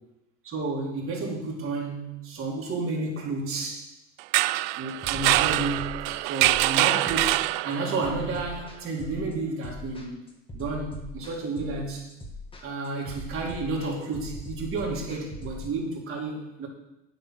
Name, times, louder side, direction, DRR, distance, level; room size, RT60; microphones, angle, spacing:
voice 1, 0.4-3.9 4.8-10.2 10.5-12.1 12.6-16.7, right 3 dB, 35° right, -2 dB, 4.0 m, -31 dB
sound 1, 4.2-8.1, right 19 dB, 55° right, 0.4 m, -24 dB
sound 2, 5.0-15.7, left 1 dB, 15° left, 2.3 m, -41 dB
9.9 x 8.1 x 6.5 m, 0.93 s
hypercardioid pair, 95°, 37 cm